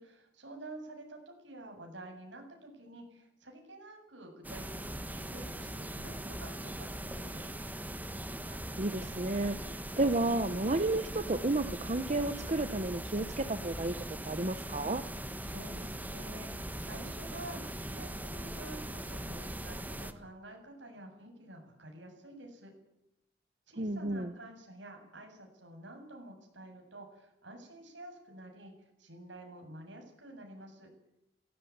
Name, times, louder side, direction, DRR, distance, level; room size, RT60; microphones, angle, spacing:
voice 1, 0.0-7.4 15.4-22.7 23.7-30.9, right 1 dB, 70° right, 3 dB, 7.7 m, -49 dB
sound 1, 4.4-20.1, right 1 dB, 10° right, 1.4 m, -40 dB
voice 2, 8.5-15.0 23.8-24.3, right 2 dB, 40° right, 9 dB, 1.0 m, -32 dB
17.5 x 17.5 x 9.5 m, 0.84 s
head